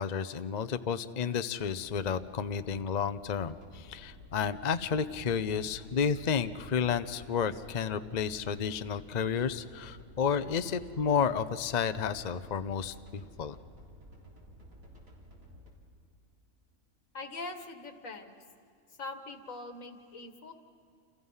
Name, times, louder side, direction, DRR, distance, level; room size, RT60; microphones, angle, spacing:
voice 1, 0.0-13.6, left 7 dB, 40° left, 11 dB, 0.6 m, -31 dB
sound 1, 1.6-15.7, equal, 75° right, 4.2 m, -53 dB
voice 2, 17.1-18.4 19.0-20.5, left 3 dB, 70° left, 7 dB, 2.1 m, -42 dB
29.0 x 28.5 x 5.6 m, 2.4 s
omnidirectional pair, 1.4 m